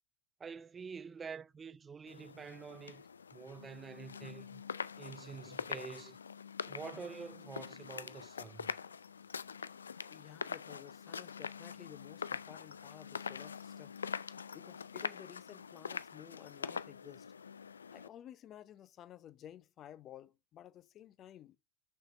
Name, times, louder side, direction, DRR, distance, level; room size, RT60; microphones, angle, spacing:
voice 1, 0.4-4.6 5.0-6.2 6.7-8.7, right 6 dB, 20° right, 0.3 m, -47 dB
sound 1, 2.1-18.1, left 6 dB, 80° left, 0.3 m, -44 dB
voice 2, 10.1-14.0 14.5-17.3 17.9-21.6, left 11 dB, 35° left, 0.7 m, -54 dB
6.5 x 5.8 x 5.2 m
figure-of-eight pair, 80°, 0 cm